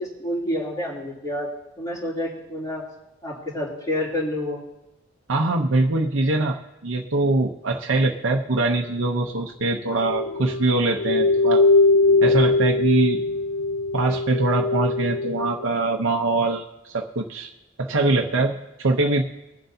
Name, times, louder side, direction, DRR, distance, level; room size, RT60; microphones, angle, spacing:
voice 1, 0.0-1.5 1.8-2.8 3.2-4.6, left 1 dB, 20° left, -6 dB, 3.1 m, -28 dB
voice 2, 5.3-11.6 12.2-13.2 13.9-17.5 17.8-19.2, right 2 dB, 85° right, 0 dB, 0.9 m, -23 dB
sound 1, 10.0-15.7, left 3 dB, 75° left, 0.4 m, -21 dB
21.5 x 7.8 x 2.8 m, 0.92 s
head